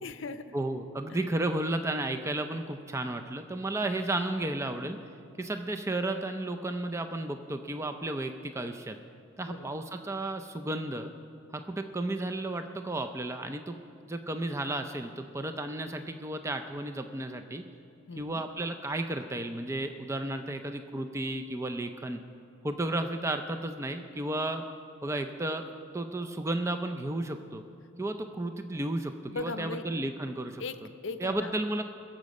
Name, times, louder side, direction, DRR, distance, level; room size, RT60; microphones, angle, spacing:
voice 1, 0.0-0.5 1.1-1.2 9.4-9.8 18.1-18.4 29.3-29.9 30.6-31.5, left 3 dB, 60° left, 10 dB, 0.6 m, -39 dB
voice 2, 0.5-5.0 5.4-9.0 9.4-11.1 11.5-13.7 14.0-17.6 18.2-22.2 22.6-24.6 25.0-25.6 25.9-27.6 28.0-30.6 31.2-31.8, right 1 dB, 15° right, 6 dB, 0.4 m, -33 dB
20.5 x 7.5 x 5.3 m, 2.5 s
head